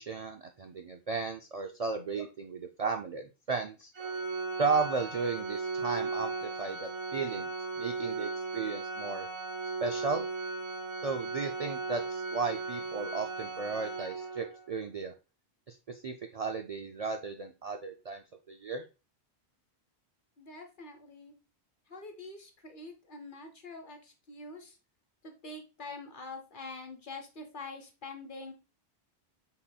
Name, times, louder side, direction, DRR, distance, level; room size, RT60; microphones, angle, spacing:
voice 1, 0.0-3.9 4.6-7.5 7.8-9.3 9.8-10.2 11.0-15.1 15.7-18.8, right 4 dB, 55° right, 5 dB, 0.4 m, -35 dB
Organ, 3.9-14.6, right 4 dB, 85° right, 1.6 m, -36 dB
voice 2, 20.4-21.3 21.9-24.8 25.2-28.5, left 3 dB, 50° left, 5 dB, 1.1 m, -45 dB
5.7 x 4.1 x 2.3 m, 0.30 s
omnidirectional pair, 1.1 m